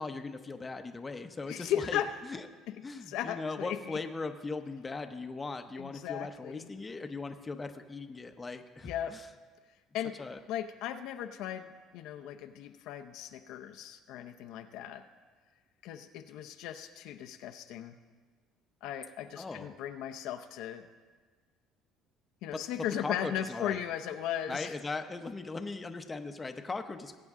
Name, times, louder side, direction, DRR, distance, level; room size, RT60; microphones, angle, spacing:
voice 1, 0.0-2.5 2.8-9.3 10.2-10.4 19.4-19.8 22.5-22.6 23.0-23.8 24.5-27.2, left 3 dB, 20° left, 7 dB, 0.7 m, -39 dB
voice 2, 1.5-2.1 2.7-2.8 3.1-4.0 5.8-6.7 8.8-9.1 9.9-10.2 10.5-15.0 15.8-18.0 18.8-20.9 22.4-24.7, left 10 dB, 75° left, 7 dB, 0.6 m, -37 dB
20.0 x 8.4 x 3.7 m, 1.5 s
cardioid pair, 120°, 0 cm